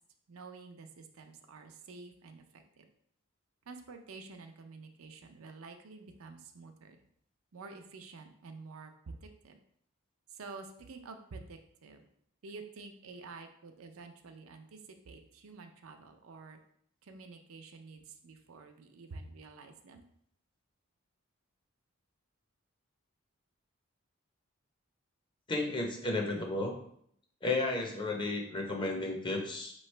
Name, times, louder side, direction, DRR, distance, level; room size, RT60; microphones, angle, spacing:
voice 1, 0.3-2.9 3.7-7.0 7.5-9.6 10.3-12.0 12.4-16.6 17.0-20.0, right 4 dB, 85° right, 6 dB, 0.5 m, -49 dB
voice 2, 25.5-26.7 27.4-29.7, left 2 dB, 25° left, 1 dB, 0.7 m, -33 dB
4.7 x 3.1 x 3.2 m, 0.68 s
head